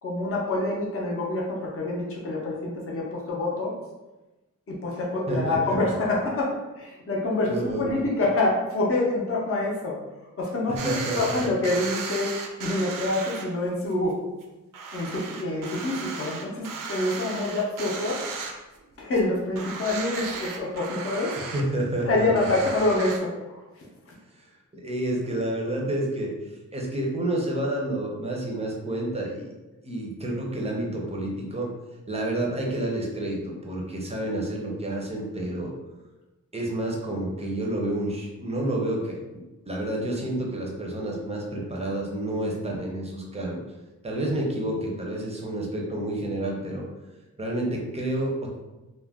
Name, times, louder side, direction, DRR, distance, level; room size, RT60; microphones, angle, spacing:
voice 1, 0.0-3.7 4.7-10.0 10.4-12.3 12.6-14.2 14.9-18.2 19.0-21.3 22.0-23.9, left 2 dB, 45° left, -3 dB, 0.6 m, -26 dB
voice 2, 5.3-5.9 7.5-8.0 10.7-11.4 21.5-22.7 24.3-29.5 29.8-31.7 32.1-35.7 36.5-43.6 44.0-46.9 47.4-48.6, right 1 dB, 20° right, -1 dB, 0.5 m, -29 dB
sound 1, 10.8-13.4 13.9-14.0 14.4-14.5 14.7-18.9 19.2-19.3 19.5-21.6 22.4-23.2, right 4 dB, 80° right, 0.5 m, -35 dB
2.4 x 2.1 x 3.4 m, 1.1 s
wide cardioid pair, 155°, 32 cm